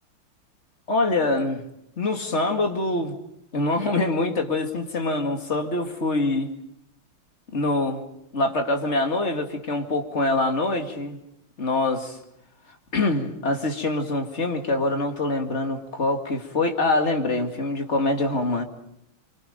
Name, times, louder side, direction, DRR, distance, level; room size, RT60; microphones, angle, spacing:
voice 1, 0.9-1.6 2.0-3.2 3.5-6.5 7.5-8.0 8.3-11.2 11.6-12.2 12.9-18.6, left 2 dB, 30° left, 4 dB, 2.4 m, -24 dB
29.5 x 24.5 x 5.2 m, 0.79 s
omnidirectional pair, 2.4 m